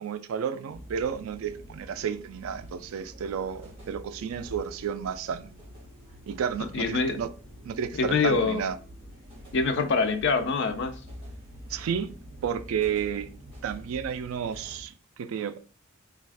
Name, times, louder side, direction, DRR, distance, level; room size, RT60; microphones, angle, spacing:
voice 1, 0.0-5.5 6.3-7.3 7.7-8.8 11.7-12.1 12.4-13.3 13.6-15.6, right 7 dB, 75° right, 0.3 m, -31 dB
sound 1, 0.7-14.8, equal, 25° right, 1.1 m, -46 dB
voice 2, 6.6-7.2 7.9-8.6 9.5-11.0, left 4 dB, 55° left, 0.4 m, -25 dB
3.3 x 2.3 x 3.3 m
head